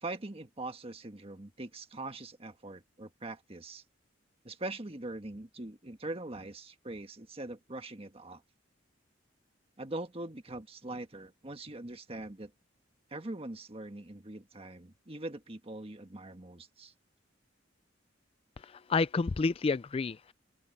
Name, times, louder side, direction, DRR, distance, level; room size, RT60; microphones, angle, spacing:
voice 1, 0.0-3.8 4.4-8.4 9.8-12.5 13.1-16.9, right 2 dB, 30° right, 1.6 m, -42 dB
voice 2, 18.6-20.3, left 4 dB, 30° left, 0.3 m, -30 dB
open air
head